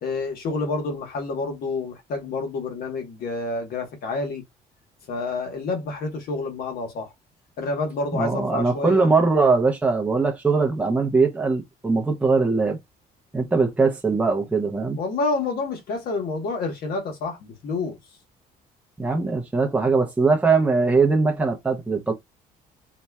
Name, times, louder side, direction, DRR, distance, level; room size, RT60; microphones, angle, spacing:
voice 1, 0.0-4.4 5.1-7.1 7.6-9.1 15.0-18.0, left 3 dB, 65° left, 1.2 m, -28 dB
voice 2, 8.1-12.8 13.3-15.0 19.0-22.1, right 4 dB, 10° right, 0.6 m, -21 dB
4.1 x 2.3 x 2.2 m
cardioid pair, 110°, 17 cm